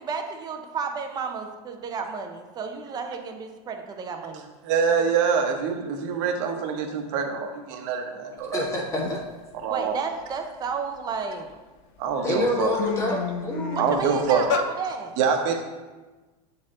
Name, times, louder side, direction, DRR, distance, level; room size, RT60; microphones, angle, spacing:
voice 1, 0.0-4.4 9.7-11.6 13.7-15.2, right 5 dB, 20° right, 5 dB, 0.6 m, -32 dB
voice 2, 4.6-8.7 9.6-10.0 12.0-12.8 13.8-14.5 15.2-15.6, right 6 dB, 55° right, 4 dB, 1.1 m, -25 dB
voice 3, 8.5-9.2 12.2-14.2, left 1 dB, 15° left, -3 dB, 1.5 m, -28 dB
sound 1, 8.6-8.7 9.0-9.4 9.8-11.4 12.0-12.1 12.5-14.7, left 7 dB, 45° left, 0.5 m, -31 dB
8.3 x 4.3 x 3.7 m, 1.2 s
supercardioid pair, 150°, 20 cm